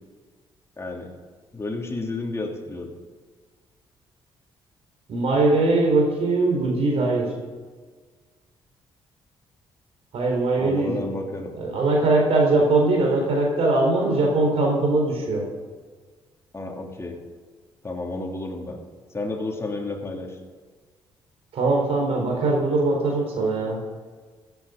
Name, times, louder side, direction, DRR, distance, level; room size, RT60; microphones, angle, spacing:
voice 1, 0.8-1.1 1.5-2.9 10.6-11.5 16.5-17.2 17.8-18.8 19.1-20.4, left 2 dB, 25° left, 1 dB, 3.0 m, -31 dB
voice 2, 5.1-7.3 10.1-11.0 11.6-15.5 21.5-23.8, right 2 dB, 70° right, 1 dB, 4.2 m, -21 dB
16.0 x 9.2 x 5.2 m, 1.5 s
supercardioid pair, 65°, 11 cm